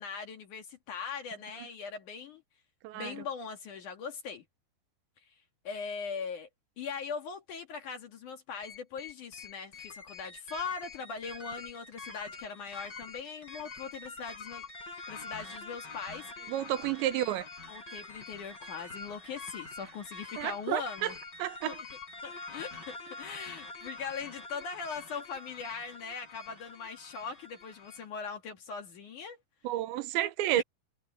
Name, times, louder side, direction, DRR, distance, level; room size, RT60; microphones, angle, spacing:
voice 1, 0.0-2.4 2.9-4.4 5.6-6.5 6.8-14.6 15.1-16.5 17.7-21.1 21.6-21.8 22.2-29.4 30.5-30.6, left 6 dB, 55° left, 2.9 m, -40 dB
voice 2, 2.8-3.2 16.5-17.5 20.4-21.1 21.4-21.8 29.6-30.6, right 14 dB, 85° right, 3.2 m, -31 dB
sound 1, 8.6-28.1, left 3 dB, 25° left, 4.8 m, -46 dB
omnidirectional pair, 5.2 m